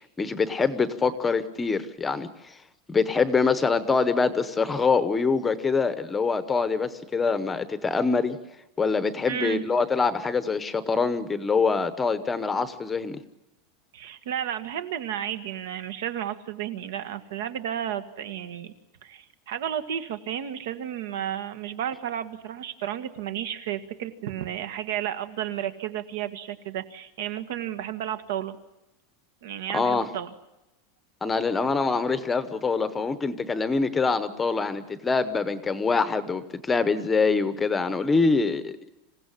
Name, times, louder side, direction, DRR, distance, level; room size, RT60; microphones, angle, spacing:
voice 1, 0.2-2.5 2.9-8.4 8.8-13.2 29.7-30.1 31.2-38.7, left 4 dB, 10° left, 12 dB, 0.9 m, -24 dB
voice 2, 9.3-9.7 13.9-18.7 19.0-28.6 29.4-30.3, right 10 dB, 70° right, 10 dB, 1.8 m, -32 dB
26.5 x 16.5 x 9.9 m, 0.97 s
supercardioid pair, 175°, 0 cm